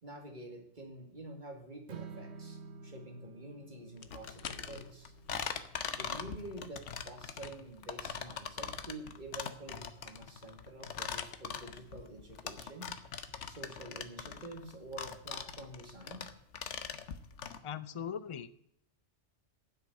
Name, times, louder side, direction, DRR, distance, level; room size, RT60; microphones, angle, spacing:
voice 1, 0.0-5.1 5.9-12.9 13.5-16.2, right 2 dB, 45° right, 3 dB, 2.6 m, -48 dB
Strum, 1.9-8.1, right 4 dB, 70° right, 1.3 m, -52 dB
sound 1, 3.9-15.1, left 8 dB, 70° left, 1.1 m, -54 dB
sound 2, 4.1-17.6, left 7 dB, 90° left, 1.3 m, -41 dB
voice 2, 17.6-18.5, left 8 dB, 35° left, 13 dB, 0.6 m, -39 dB
9.6 x 8.0 x 8.0 m, 0.71 s
omnidirectional pair, 1.2 m